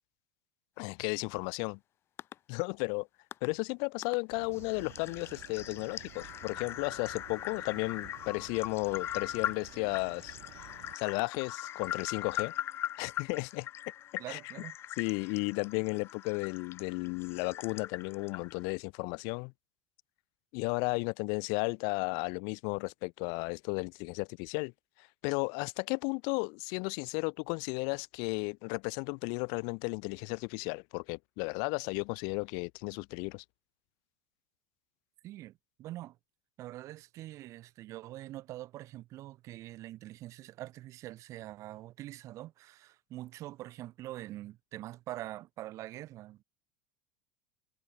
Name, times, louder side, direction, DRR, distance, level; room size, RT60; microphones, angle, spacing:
voice 1, 0.8-1.8 2.5-3.1 3.4-10.4 10.9-12.5 13.0-13.7 14.1-14.4 15.0-19.5 20.5-24.7 25.0-33.4, left 38 dB, 55° left, 0.5 m, -34 dB
sound 1, 2.2-2.3 3.3-3.5 4.0-4.2 4.5-18.7, left 12 dB, 30° left, 1.1 m, -41 dB
sound 2, 4.3-11.0, right 40 dB or more, 60° right, 4.2 m, -53 dB
voice 2, 14.2-14.8 35.2-36.2 36.6-46.4, right 15 dB, 40° right, 3.9 m, -44 dB
supercardioid pair, 165°, 8 cm